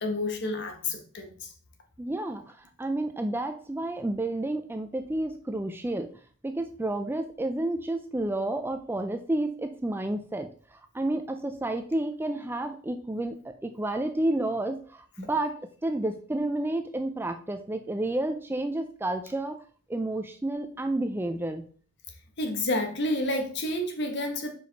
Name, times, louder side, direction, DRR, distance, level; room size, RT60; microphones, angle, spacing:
voice 1, 0.0-1.5 22.4-24.5, left 1 dB, 55° left, 4 dB, 1.2 m, -29 dB
voice 2, 2.0-6.1 6.4-15.6 15.8-19.6 19.9-21.6, right 1 dB, 10° right, 7 dB, 0.4 m, -30 dB
5.0 x 4.8 x 4.0 m, 0.44 s
head